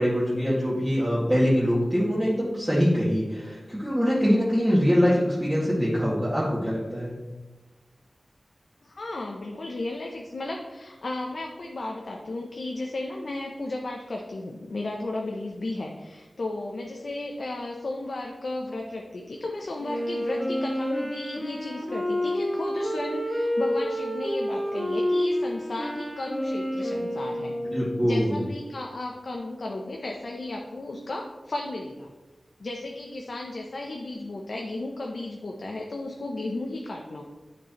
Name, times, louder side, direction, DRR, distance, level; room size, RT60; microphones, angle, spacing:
voice 1, 0.0-7.1 27.7-28.4, equal, 10° right, -10 dB, 1.8 m, -23 dB
voice 2, 8.8-27.5 28.0-32.1 32.6-37.2, left 2 dB, 70° left, 1 dB, 0.6 m, -34 dB
Wind instrument woodwind instrument, 19.8-28.4, equal, 15° left, 2.0 m, -29 dB
10.0 x 4.6 x 3.0 m, 1.2 s
wide cardioid pair, 85°, 0 cm